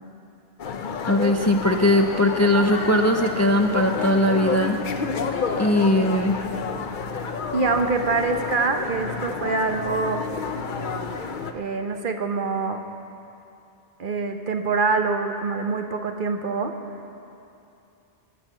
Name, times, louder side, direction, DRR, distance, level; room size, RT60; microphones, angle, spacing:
sound 1, 0.6-11.5, left 5 dB, 55° left, 0.8 m, -30 dB
voice 1, 1.0-4.8 5.6-6.4, left 1 dB, 20° left, 4 dB, 0.4 m, -20 dB
voice 2, 7.5-10.2 11.5-12.8 14.0-16.7, right 4 dB, 55° right, 5 dB, 1.0 m, -25 dB
20.0 x 6.7 x 7.4 m, 2.8 s
omnidirectional pair, 1.0 m